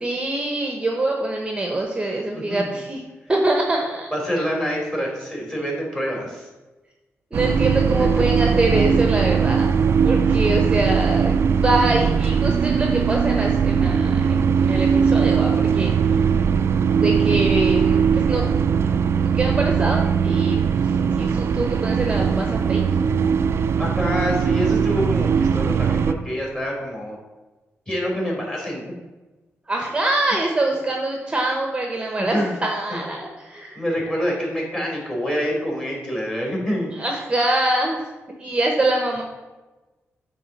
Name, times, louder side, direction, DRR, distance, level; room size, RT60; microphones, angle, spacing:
voice 1, 0.0-3.0 3.3-4.4 7.3-11.4 11.6-15.9 17.0-18.4 19.3-20.7 21.2-22.8 29.7-33.8 36.9-38.0 38.4-39.2, right 2 dB, 20° right, 1 dB, 1.0 m, -24 dB
voice 2, 2.3-2.7 4.1-6.4 10.2-10.4 16.0-16.6 23.8-27.2 27.9-28.8 32.2-32.5 32.9-33.0 33.8-36.9, equal, 15° left, -2 dB, 2.8 m, -26 dB
sound 1, 7.3-26.1, right 6 dB, 60° right, 0.4 m, -20 dB
8.7 x 3.7 x 6.4 m, 1.2 s
wide cardioid pair, 115°, 5 cm